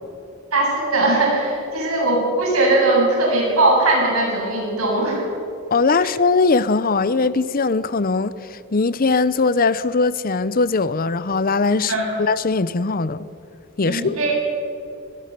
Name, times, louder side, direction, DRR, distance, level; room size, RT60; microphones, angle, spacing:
voice 1, 0.5-5.3 11.9-12.0 13.9-14.3, right 2 dB, 85° right, 8.0 m, -19 dB
voice 2, 5.7-11.9 12.2-13.2 13.8-14.3, left 4 dB, 45° left, 0.7 m, -20 dB
24.0 x 21.0 x 6.8 m
head